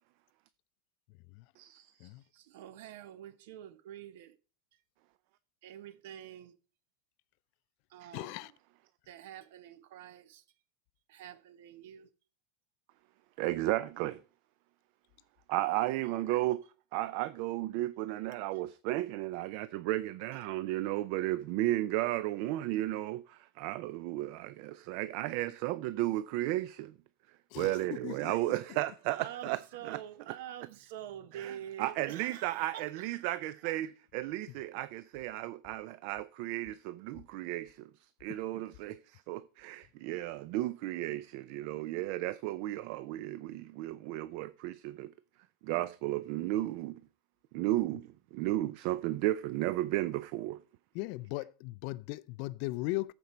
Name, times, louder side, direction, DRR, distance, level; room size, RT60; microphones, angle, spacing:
voice 1, 1.6-2.1 8.0-8.1 13.4-14.2 15.5-16.6 16.9-26.9 27.6-29.6 29.8-30.0 31.3-37.9 38.2-45.1 45.6-47.0 47.5-50.6, right 16 dB, 45° right, 0.4 m, -34 dB
voice 2, 2.3-4.3 5.6-6.5 7.9-8.5 9.1-10.4 11.1-12.1 16.0-16.1 29.1-33.1, right 11 dB, 60° right, 1.0 m, -47 dB
voice 3, 8.1-8.5 27.5-28.5 38.3-38.4 50.9-53.1, left 20 dB, 45° left, 0.3 m, -38 dB
14.0 x 5.2 x 4.4 m
supercardioid pair, 175°, 0 cm